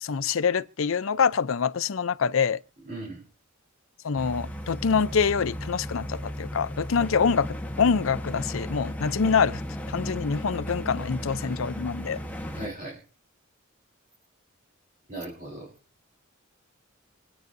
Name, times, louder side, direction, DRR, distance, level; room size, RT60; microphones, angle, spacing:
voice 1, 0.0-2.6 4.0-9.6 9.9-12.2, left 6 dB, 75° left, 0.5 m, -25 dB
voice 2, 2.9-3.2 11.4-11.6 12.5-13.0 15.1-15.7, right 2 dB, 45° right, 3.7 m, -38 dB
sound 1, 4.1-12.7, equal, 10° left, 1.1 m, -35 dB
26.5 x 9.2 x 2.6 m
head